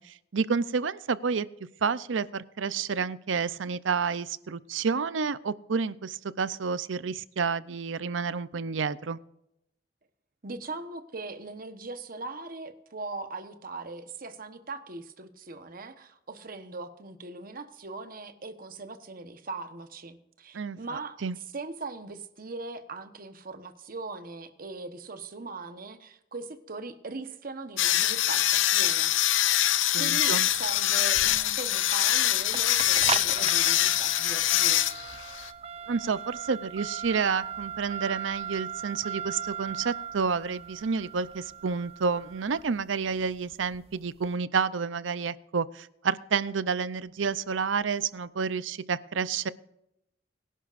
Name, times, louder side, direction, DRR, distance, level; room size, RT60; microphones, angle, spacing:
voice 1, 0.0-1.5 1.8-9.2 20.5-21.4 29.9-30.5 35.9-49.5, right 5 dB, 85° right, 16 dB, 0.6 m, -30 dB
voice 2, 10.4-21.2 21.5-29.1 29.4-29.6 30.0-34.9, right 3 dB, 50° right, 9 dB, 1.1 m, -40 dB
sound 1, 27.8-35.5, left 12 dB, 85° left, 0.7 m, -24 dB
sound 2, 30.1-44.2, right 8 dB, 35° right, 0.4 m, -38 dB
22.5 x 11.0 x 2.6 m, 0.82 s
head